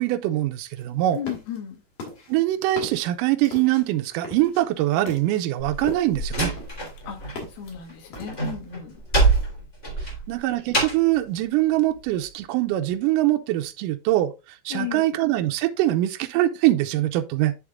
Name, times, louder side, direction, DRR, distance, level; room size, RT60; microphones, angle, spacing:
voice 1, 0.0-1.2 2.3-6.5 10.3-17.6, right 15 dB, 80° right, 2.0 m, -23 dB
sound 1, 0.8-1.6 2.0-6.3 6.6-7.7 8.1-8.7, left 2 dB, 60° left, 3.3 m, -38 dB
voice 2, 1.1-1.8 7.1-9.0 10.0-10.2 14.7-15.1, left 10 dB, 75° left, 3.2 m, -35 dB
Slam, 5.6-7.4 7.7-11.2, right 3 dB, 20° left, 2.3 m, -25 dB
10.0 x 3.6 x 3.5 m
omnidirectional pair, 4.4 m